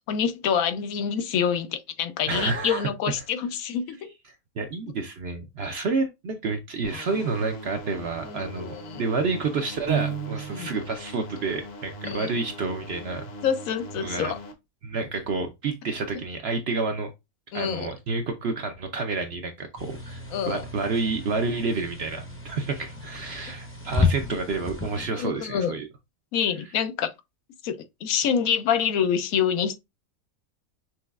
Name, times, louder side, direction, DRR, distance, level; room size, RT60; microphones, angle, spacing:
voice 1, 0.1-4.1 8.3-9.0 10.5-10.7 12.0-12.3 13.4-14.4 17.5-17.9 20.3-20.6 25.2-25.7 26.3-27.1 27.6-29.8, left 8 dB, 75° left, 1.0 m, -26 dB
voice 2, 2.3-2.9 4.6-13.2 14.0-14.3 14.8-17.1 17.5-20.2 20.5-25.9, right 4 dB, 60° right, 0.7 m, -29 dB
sound 1, 6.8-14.5, equal, 50° left, 1.0 m, -41 dB
Piano, 9.9-10.9, right 8 dB, 80° right, 1.4 m, -30 dB
sound 2, 19.8-25.1, left 4 dB, 10° left, 0.6 m, -31 dB
6.0 x 3.1 x 2.3 m
omnidirectional pair, 1.5 m